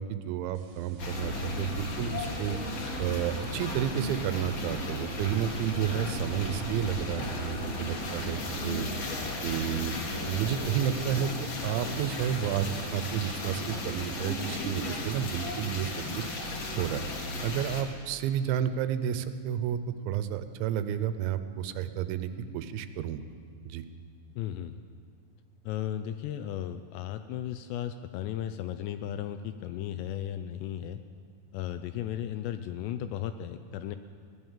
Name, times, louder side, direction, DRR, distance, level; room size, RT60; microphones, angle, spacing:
voice 1, 0.0-2.6 3.0-8.9 9.4-10.0 10.3-16.2 16.7-17.1 17.4-23.2 23.7-23.8, right 10 dB, 85° right, 11 dB, 3.0 m, -31 dB
sound 1, 0.5-8.8, right 2 dB, 70° right, 2.8 m, -44 dB
sound 2, 1.0-17.8, left 1 dB, 55° left, 1.9 m, -35 dB
voice 2, 24.4-24.8 25.6-31.0 31.5-34.0, left 11 dB, 85° left, 10 dB, 2.5 m, -35 dB
16.5 x 11.0 x 7.2 m, 2.2 s
omnidirectional pair, 5.3 m